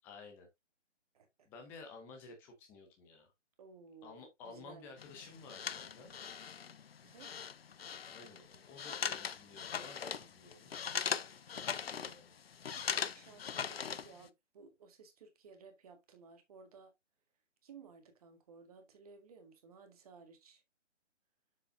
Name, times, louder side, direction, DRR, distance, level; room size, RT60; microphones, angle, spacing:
voice 1, 0.0-0.5 1.4-3.3 4.0-6.1 8.1-10.7 11.6-12.3, left 4 dB, 5° left, 0.8 m, -53 dB
voice 2, 1.1-1.5 3.6-5.0 7.0-7.4 11.5-12.1 12.7-16.9 17.6-20.6, right 5 dB, 30° right, 1.8 m, -58 dB
sound 1, 5.0-14.3, left 7 dB, 55° left, 0.6 m, -40 dB
7.2 x 6.7 x 2.5 m
figure-of-eight pair, 150°, 36 cm